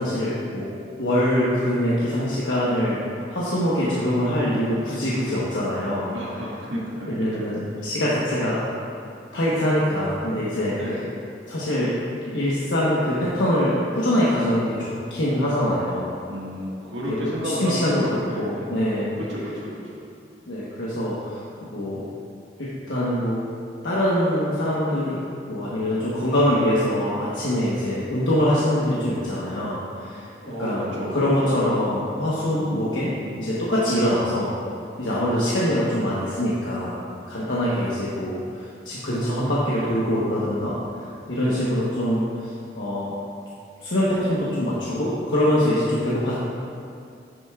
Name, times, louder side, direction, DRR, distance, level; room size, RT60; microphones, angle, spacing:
voice 1, 0.0-3.0 3.3-6.1 7.1-8.6 9.3-10.8 11.5-11.9 12.2-16.1 17.1-18.0 18.3-19.1 20.5-22.0 22.6-23.4 23.8-25.2 25.5-30.3 30.6-33.1 33.4-34.5 35.0-37.0 37.3-43.1 43.8-46.3, left 1 dB, 90° left, -8 dB, 1.2 m, -24 dB
voice 2, 6.1-7.6 10.8-11.0 16.3-18.7 19.2-20.0 30.4-31.5 32.5-33.4 37.3-38.3 41.4-41.6, equal, 90° right, -5 dB, 1.8 m, -33 dB
10.0 x 8.0 x 2.4 m, 2.5 s
head